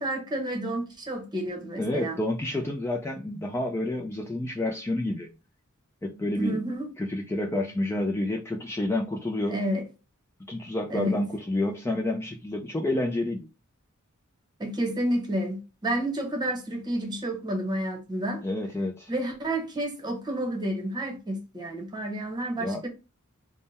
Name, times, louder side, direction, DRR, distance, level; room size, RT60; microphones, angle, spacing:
voice 1, 0.0-2.2 6.4-6.9 9.5-9.8 10.9-11.2 14.6-18.4 19.1-22.9, right 1 dB, 20° right, 1.0 m, -30 dB
voice 2, 1.8-5.3 6.0-6.6 7.0-9.6 10.5-13.5 18.4-19.1 22.6-22.8, left 1 dB, 10° left, 0.3 m, -29 dB
3.6 x 2.1 x 4.0 m
head